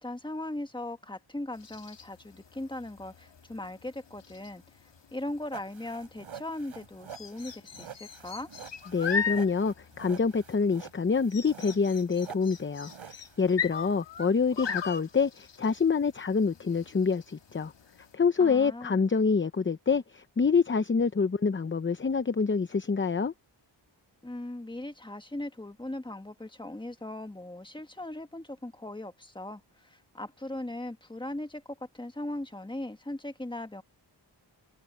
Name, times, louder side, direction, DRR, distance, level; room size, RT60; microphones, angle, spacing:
voice 1, 0.0-4.6 5.1-8.5 18.4-19.1 24.2-33.8, left 1 dB, 10° left, 1.5 m, -39 dB
sound 1, 1.5-18.1, left 6 dB, 65° left, 1.7 m, -40 dB
sound 2, 5.5-13.7, right 7 dB, 80° right, 5.7 m, -47 dB
voice 2, 8.9-17.7 18.1-23.3, left 5 dB, 25° left, 0.7 m, -26 dB
wide cardioid pair, 120°, 47 cm